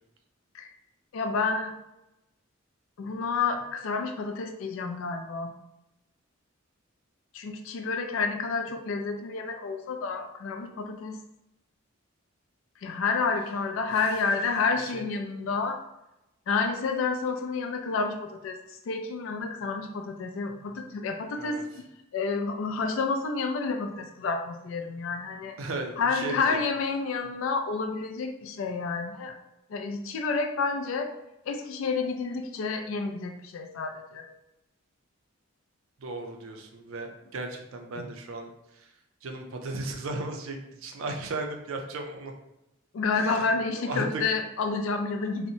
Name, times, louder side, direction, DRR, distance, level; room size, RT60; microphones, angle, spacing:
voice 1, 1.1-1.7 3.0-5.5 7.3-11.2 12.8-15.8 16.5-21.9 22.1-25.6 26.0-29.4 29.7-31.1 31.5-34.3 38.0-38.1 42.9-45.5, left 4 dB, 70° left, 6 dB, 0.3 m, -29 dB
voice 2, 25.6-26.6 36.0-38.5 38.8-38.9 39.2-42.3 43.2-43.5 43.8-44.2, right 2 dB, 75° right, 3 dB, 0.4 m, -35 dB
2.6 x 2.1 x 2.7 m, 0.89 s
head